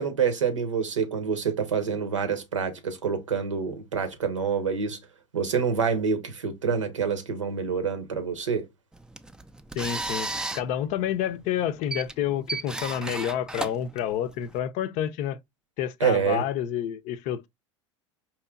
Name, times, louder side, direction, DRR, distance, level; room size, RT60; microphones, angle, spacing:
voice 1, 0.0-5.0 5.3-8.7 16.0-16.4, right 6 dB, 90° right, 0.9 m, -27 dB
sound 1, 8.9-14.6, right 2 dB, 5° right, 0.3 m, -35 dB
voice 2, 9.8-15.4 15.8-17.5, left 10 dB, 50° left, 0.5 m, -29 dB
4.7 x 2.9 x 2.3 m
hypercardioid pair, 80°, 16 cm